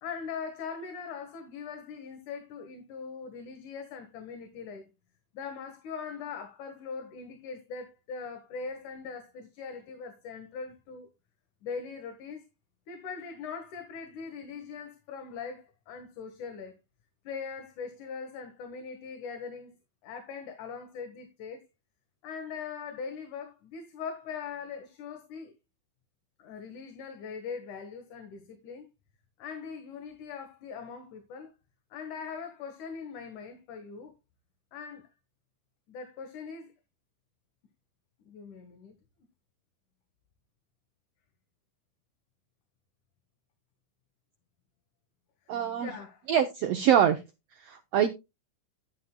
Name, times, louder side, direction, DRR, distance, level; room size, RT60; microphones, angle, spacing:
voice 1, 0.0-4.9 5.3-11.1 11.6-12.4 12.9-16.8 17.2-19.8 20.0-21.7 22.2-25.5 26.4-28.9 29.4-31.5 31.9-34.1 34.7-35.1 35.9-36.7 38.2-38.9 45.5-46.3, left 5 dB, 65° left, 2.8 m, -41 dB
voice 2, 45.5-45.9 46.3-47.2 47.6-48.1, right 9 dB, 80° right, 1.4 m, -24 dB
12.5 x 10.5 x 2.2 m
omnidirectional pair, 4.1 m